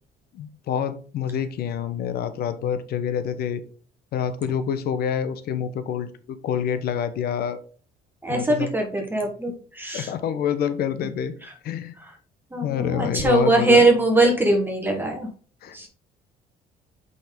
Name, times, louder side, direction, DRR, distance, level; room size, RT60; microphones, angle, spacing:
voice 1, 0.3-3.6 4.1-7.6 8.3-8.7 9.9-11.3 11.6-11.9 12.6-13.9 15.6-15.9, left 8 dB, 65° left, 12 dB, 0.9 m, -27 dB
voice 2, 8.2-10.1 11.4-11.5 12.0-12.1 12.5-15.3 15.7-15.9, right 2 dB, 10° right, 1 dB, 1.3 m, -21 dB
6.1 x 5.5 x 3.7 m, 0.40 s
cardioid pair, 110°, 17 cm